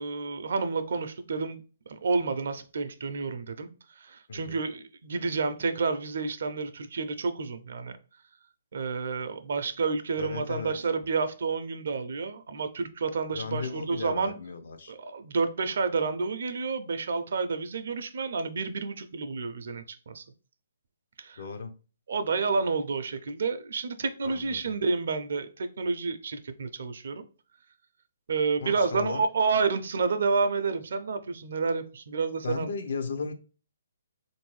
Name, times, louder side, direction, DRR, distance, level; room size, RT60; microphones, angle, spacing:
voice 1, 0.0-1.6 1.9-3.7 4.0-7.9 8.7-14.4 14.9-20.2 21.2-21.4 22.1-27.3 28.3-32.7, right 4 dB, 65° right, 0.5 m, -30 dB
voice 2, 4.3-4.6 10.2-10.7 13.3-14.9 21.4-21.7 24.2-24.8 28.6-29.2 32.4-33.3, left 4 dB, 60° left, 0.5 m, -35 dB
3.6 x 2.6 x 3.1 m
hypercardioid pair, 160°, 0 cm